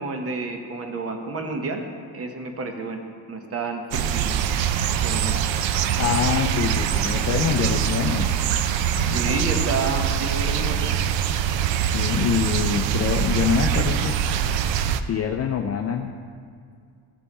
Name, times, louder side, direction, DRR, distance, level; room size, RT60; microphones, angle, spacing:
voice 1, 0.0-1.8 2.1-3.0 3.3-4.4 5.0-5.3 9.0-10.9, right 3 dB, 30° right, 4 dB, 0.9 m, -30 dB
sound 1, 3.9-15.0, right 9 dB, 75° right, 0.6 m, -23 dB
voice 2, 6.0-8.4 9.0-9.4 11.8-14.2 14.9-16.1, left 7 dB, 35° left, 3 dB, 0.4 m, -25 dB
15.5 x 5.5 x 4.2 m, 2.2 s
cardioid pair, 155°, 45 cm